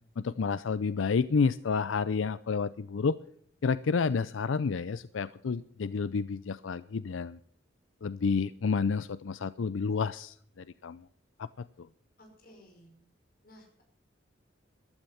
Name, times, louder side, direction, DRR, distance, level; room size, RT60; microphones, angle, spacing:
voice 1, 0.2-3.2 3.6-7.4 8.0-11.0 11.4-11.5, left 5 dB, 85° left, 16 dB, 0.5 m, -30 dB
voice 2, 12.2-12.9 13.4-13.8, equal, 50° left, 3 dB, 5.5 m, -56 dB
15.0 x 12.5 x 5.7 m, 0.62 s
head